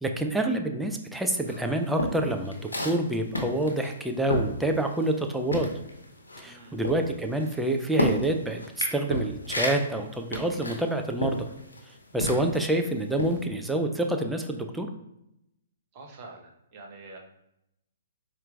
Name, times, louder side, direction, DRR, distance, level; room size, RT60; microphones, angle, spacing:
voice 1, 0.0-5.7 6.4-11.5 12.1-14.9, right 1 dB, 5° right, 4 dB, 0.4 m, -27 dB
sound 1, 1.5-5.2 5.5-12.7 13.1-13.4, left 1 dB, 85° left, 0.7 m, -32 dB
voice 2, 6.4-6.8 15.9-17.2, right 3 dB, 40° right, 1 dB, 0.8 m, -46 dB
4.3 x 2.5 x 3.3 m, 0.83 s
figure-of-eight pair, 125°, 0 cm